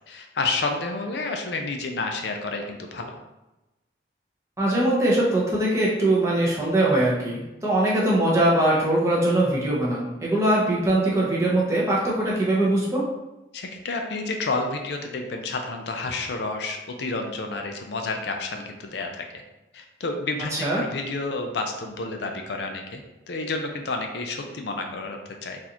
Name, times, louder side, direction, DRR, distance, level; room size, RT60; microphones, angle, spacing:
voice 1, 0.1-3.2 13.5-19.2 19.7-25.6, left 3 dB, 70° left, 3 dB, 0.5 m, -30 dB
voice 2, 4.6-13.0 20.5-20.8, right 1 dB, 15° right, -6 dB, 0.8 m, -22 dB
4.0 x 2.6 x 2.9 m, 0.99 s
head